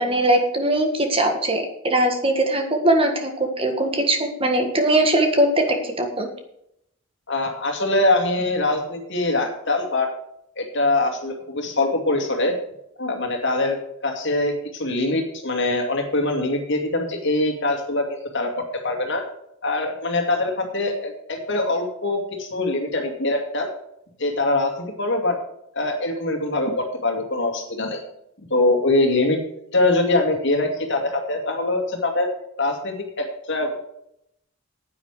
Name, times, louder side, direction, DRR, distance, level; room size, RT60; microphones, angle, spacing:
voice 1, 0.0-6.3, right 1 dB, 25° right, 3 dB, 1.6 m, -21 dB
voice 2, 7.3-10.1 10.6-12.5 13.0-13.8 14.0-19.2 19.6-23.7 24.2-25.4 25.7-28.0 28.5-29.4 29.7-32.3 32.6-33.8, left 2 dB, 60° left, 3 dB, 2.4 m, -23 dB
9.9 x 9.2 x 4.9 m, 0.76 s
head